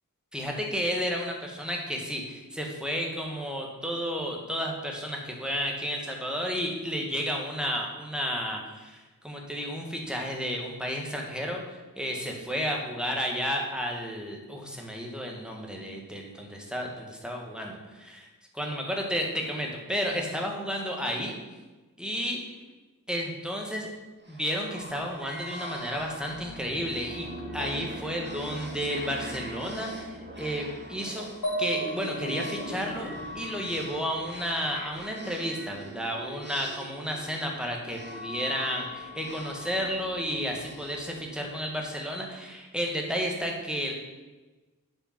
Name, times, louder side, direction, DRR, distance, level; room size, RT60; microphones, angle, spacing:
voice 1, 0.3-18.3 18.5-21.3 22.0-22.4 23.1-23.9 24.3-27.3 27.5-31.2 31.6-43.9, equal, ahead, -1 dB, 1.5 m, -32 dB
sound 1, 24.2-41.9, equal, 30° right, 1.4 m, -42 dB
sound 2, 31.4-35.1, right 1 dB, 60° left, 2.2 m, -35 dB
7.5 x 5.0 x 5.8 m, 1.2 s
wide cardioid pair, 75°, 35 cm